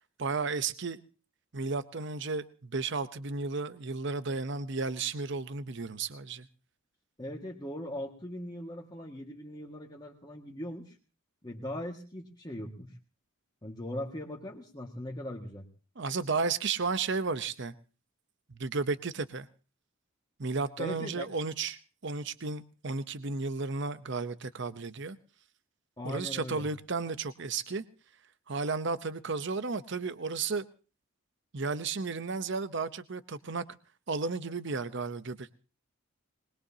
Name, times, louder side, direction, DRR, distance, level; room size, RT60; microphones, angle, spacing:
voice 1, 0.2-1.0 1.5-6.5 16.0-17.7 18.5-19.5 20.4-25.2 26.0-27.8 28.5-30.6 31.5-33.6 34.1-35.5, right 4 dB, 55° right, 13 dB, 0.8 m, -33 dB
voice 2, 7.2-11.0 11.4-12.9 13.6-15.7 20.8-21.3 26.0-26.7, left 1 dB, 20° left, 0 dB, 1.8 m, -40 dB
22.5 x 21.5 x 2.8 m, 0.37 s
head